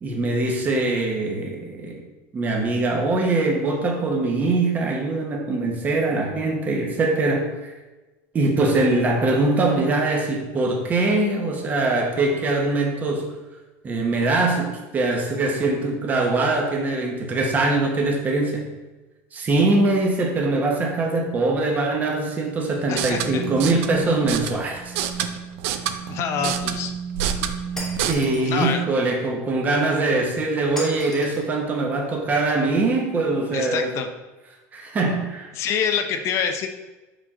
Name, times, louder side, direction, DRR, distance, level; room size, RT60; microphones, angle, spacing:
voice 1, 0.0-2.0 2.3-7.5 8.3-13.3 13.8-18.6 19.3-24.9 28.0-33.9 34.7-35.5, right 2 dB, 25° right, 1 dB, 1.0 m, -22 dB
sound 1, 22.8-28.1, right 8 dB, 80° right, 0.5 m, -28 dB
voice 2, 22.9-23.4 26.1-26.9 28.4-28.8 33.5-34.1 35.5-36.7, left 7 dB, 45° left, 7 dB, 0.6 m, -26 dB
Shatter, 27.8-28.5 30.8-31.5, left 1 dB, 5° left, 1.1 m, -36 dB
5.7 x 5.1 x 3.7 m, 1.1 s
cardioid pair, 150°, 7 cm